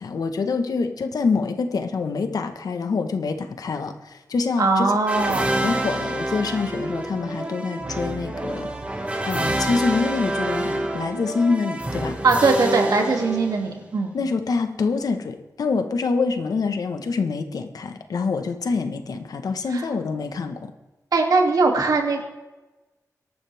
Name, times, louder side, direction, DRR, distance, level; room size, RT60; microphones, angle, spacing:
voice 1, 0.0-4.9 5.6-8.7 9.3-12.2 14.1-20.7, left 4 dB, 85° left, 7 dB, 1.4 m, -26 dB
voice 2, 4.6-5.5 12.2-14.1 19.7-19.8 21.1-22.2, right 3 dB, 80° right, 2 dB, 2.7 m, -20 dB
sound 1, 5.1-13.9, right 1 dB, 20° right, 2.0 m, -27 dB
22.5 x 12.0 x 3.6 m, 1.1 s
wide cardioid pair, 135°, 6 cm